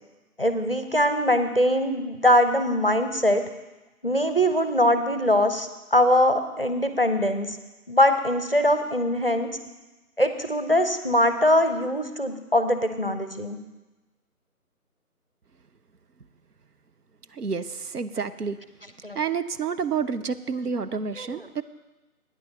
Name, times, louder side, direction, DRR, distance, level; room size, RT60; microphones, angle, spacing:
voice 1, 0.4-3.4 4.0-7.5 7.9-9.5 10.2-13.6 19.0-19.2, left 1 dB, 40° left, 9 dB, 0.6 m, -22 dB
voice 2, 17.3-18.6 19.1-21.6, right 6 dB, 85° right, 11 dB, 0.7 m, -29 dB
9.4 x 8.4 x 5.9 m, 1.1 s
figure-of-eight pair, 165°, 45 cm